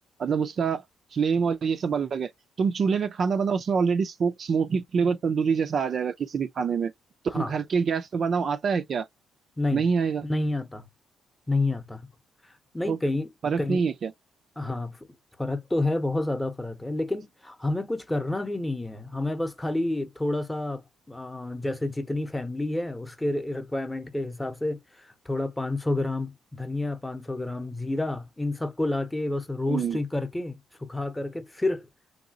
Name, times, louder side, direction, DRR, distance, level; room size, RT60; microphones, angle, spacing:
voice 1, 0.2-0.8 1.1-2.3 2.6-6.9 7.3-9.1 9.7-10.2 12.9-13.0 13.4-14.1 29.7-30.0, right 6 dB, 55° right, 0.4 m, -25 dB
voice 2, 10.2-10.8 11.5-12.1 12.7-13.3 13.6-13.9 14.6-15.0 15.4-31.9, left 2 dB, 10° left, 0.8 m, -29 dB
3.2 x 2.7 x 2.7 m
cardioid pair, 90°, 0 cm